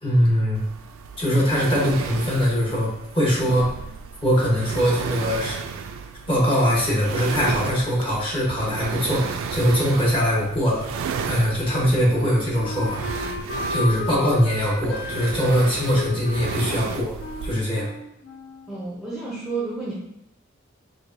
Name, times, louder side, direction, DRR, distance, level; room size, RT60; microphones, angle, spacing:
voice 1, 0.0-0.6 1.2-3.7 4.2-5.6 6.3-10.9 11.2-13.1 13.7-17.1 17.4-17.9, equal, 25° left, -5 dB, 1.0 m, -22 dB
sound 1, 0.5-17.5, right 6 dB, 90° right, 0.3 m, -33 dB
Wind instrument woodwind instrument, 11.6-19.1, left 3 dB, 60° left, 0.4 m, -34 dB
voice 2, 18.7-19.9, right 3 dB, 5° right, -7 dB, 0.5 m, -30 dB
4.7 x 2.2 x 2.6 m, 0.82 s
head